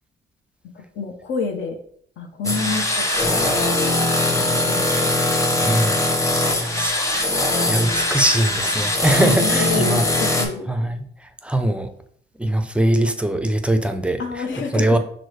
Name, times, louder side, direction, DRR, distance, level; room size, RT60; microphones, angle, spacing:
voice 1, 0.7-1.8 2.2-5.1 9.2-10.9 14.2-15.0, left 4 dB, 70° left, 3 dB, 0.7 m, -29 dB
sound 1, 2.4-10.5, left 2 dB, 15° left, 0.8 m, -21 dB
voice 2, 5.6-6.0 6.2-10.1 10.7-11.9 12.4-14.4 14.7-15.0, right 1 dB, 5° right, 8 dB, 0.4 m, -22 dB
6.0 x 2.0 x 3.1 m, 0.64 s
cardioid pair, 90°, 20 cm